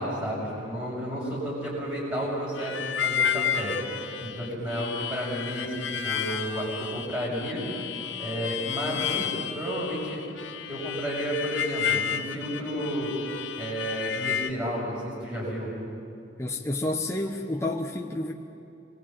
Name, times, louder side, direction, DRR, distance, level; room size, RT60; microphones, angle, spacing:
voice 1, 0.0-7.7 8.2-10.2 10.7-13.1 13.6-15.7, equal, 20° right, -8 dB, 6.3 m, -32 dB
Harmonica, 2.6-14.5, left 8 dB, 85° left, 1.2 m, -32 dB
voice 2, 16.4-18.3, left 2 dB, 15° left, 1 dB, 1.0 m, -29 dB
26.0 x 20.0 x 8.9 m, 2.7 s
head